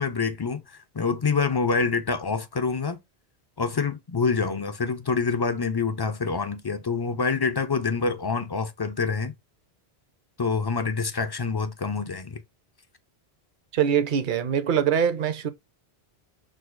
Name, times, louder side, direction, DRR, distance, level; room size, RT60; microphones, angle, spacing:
voice 1, 0.0-3.0 3.6-9.3 10.4-12.4, left 4 dB, 40° left, 0.3 m, -26 dB
voice 2, 13.7-15.5, right 8 dB, 55° right, 0.8 m, -23 dB
6.2 x 2.3 x 2.5 m
omnidirectional pair, 1.1 m